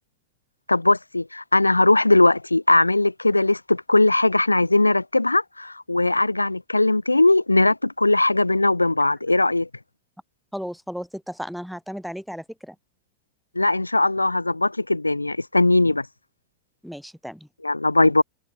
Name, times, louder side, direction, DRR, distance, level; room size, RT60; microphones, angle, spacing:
voice 1, 0.7-9.7 13.5-16.1 17.6-18.2, left 2 dB, 85° left, 1.0 m, -19 dB
voice 2, 10.5-12.8 16.8-17.5, equal, ahead, 2.5 m, -34 dB
figure-of-eight pair, 90°, 0 cm